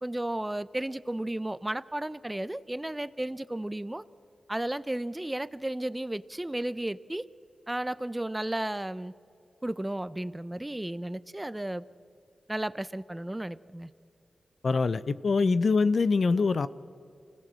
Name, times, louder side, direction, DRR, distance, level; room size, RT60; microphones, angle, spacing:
voice 1, 0.0-4.0 4.5-7.3 7.7-9.1 9.6-11.8 12.5-13.9 15.4-15.6, right 1 dB, 15° right, 17 dB, 0.7 m, -33 dB
voice 2, 14.6-16.7, left 4 dB, 60° left, 16 dB, 0.6 m, -24 dB
25.0 x 17.5 x 7.6 m, 2.6 s
cardioid pair, 55°, 0 cm